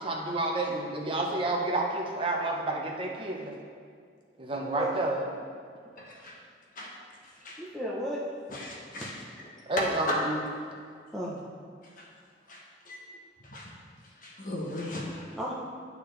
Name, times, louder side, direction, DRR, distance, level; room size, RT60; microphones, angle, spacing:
voice 1, 0.0-3.6 4.4-5.2 9.7-10.4, right 2 dB, 30° right, -1 dB, 0.9 m, -30 dB
voice 2, 4.5-4.9 7.6-8.2 11.1-11.5 15.4-15.5, equal, ahead, -6 dB, 0.8 m, -34 dB
voice 3, 6.0-6.4 6.8-6.9 7.2-7.6 8.5-9.1 9.8-10.2 12.0-12.1 12.5-13.0 13.4-13.7 14.2-15.3, left 1 dB, 50° left, -2 dB, 1.0 m, -36 dB
9.8 x 6.6 x 3.3 m, 2.1 s
head